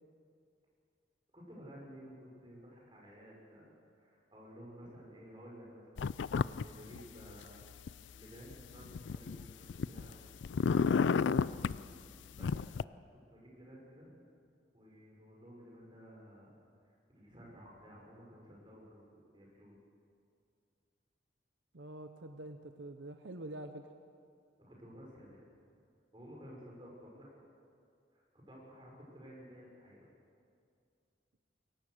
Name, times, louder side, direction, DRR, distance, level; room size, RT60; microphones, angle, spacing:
voice 1, 1.3-6.1 6.3-7.6 8.1-10.3 10.9-11.6 12.3-12.6 13.3-14.1 14.7-16.6 16.8-19.8 24.6-25.4 26.1-27.4 28.1-30.1, equal, 25° right, -3 dB, 6.1 m, -54 dB
sound 1, 6.0-6.6 6.9-7.9 8.5-10.1 10.4-11.8 12.4-12.8, left 5 dB, 80° left, 0.4 m, -31 dB
voice 2, 21.7-23.9, right 1 dB, 80° right, 7 dB, 0.9 m, -46 dB
22.5 x 18.0 x 6.7 m, 2.3 s
head